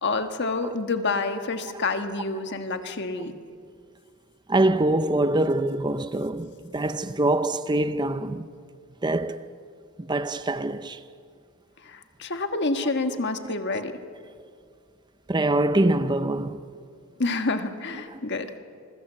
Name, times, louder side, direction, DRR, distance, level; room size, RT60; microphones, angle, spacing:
voice 1, 0.0-3.4 11.8-14.0 17.2-18.6, left 3 dB, 50° left, 1.5 m, -28 dB
voice 2, 4.5-8.5 9.0-9.5 10.0-11.0 13.1-13.8 15.3-16.6 17.9-18.2, right 2 dB, 20° right, 0.6 m, -25 dB
27.0 x 21.5 x 7.7 m
head